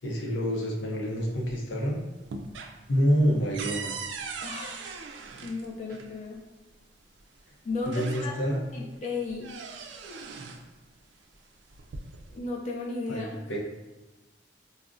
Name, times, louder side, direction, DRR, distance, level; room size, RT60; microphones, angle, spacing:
voice 1, 0.0-2.0 2.9-3.9 7.9-8.6 13.1-13.6, equal, 80° left, -1 dB, 0.6 m, -27 dB
sound 1, 1.1-1.8 2.1-6.1 7.2-7.3 7.7-8.6 9.0-10.7 11.6-12.4, right 4 dB, 70° right, 0.3 m, -40 dB
voice 2, 4.4-4.8 5.4-6.4 7.6-8.4 8.7-9.5 12.3-13.4, left 3 dB, 40° left, -1 dB, 0.3 m, -34 dB
2.4 x 2.0 x 3.6 m, 1.1 s
head